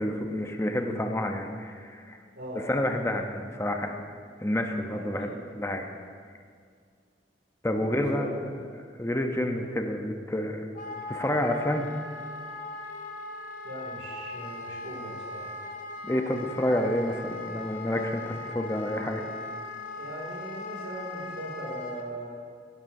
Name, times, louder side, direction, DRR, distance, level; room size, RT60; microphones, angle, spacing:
voice 1, 0.0-2.2 2.5-4.0 4.4-5.8 7.6-8.4 9.0-10.7 11.1-11.9 16.0-19.2, left 1 dB, 15° left, 4 dB, 0.7 m, -29 dB
voice 2, 2.4-2.7 4.9-5.5 7.8-8.3 9.4-9.8 10.8-10.9 13.6-15.6 20.0-22.4, right 1 dB, 85° right, -1 dB, 2.4 m, -40 dB
Wind instrument woodwind instrument, 10.7-22.1, left 2 dB, 50° left, 1.0 m, -39 dB
16.5 x 11.0 x 2.7 m, 2.1 s
head